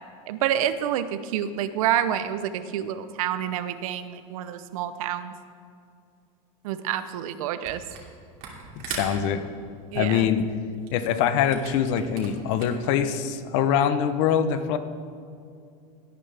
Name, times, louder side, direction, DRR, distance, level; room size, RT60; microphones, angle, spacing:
voice 1, 0.3-5.3 6.6-7.8 9.9-10.3, right 10 dB, 75° right, 12 dB, 0.8 m, -28 dB
Camera, 7.6-8.1 8.4-12.9, right 6 dB, 50° right, 2.7 m, -40 dB
voice 2, 8.9-9.4 9.9-10.5 10.9-14.8, left 8 dB, 60° left, 11 dB, 0.9 m, -23 dB
17.5 x 9.1 x 3.4 m, 2.4 s
supercardioid pair, 150°, 18 cm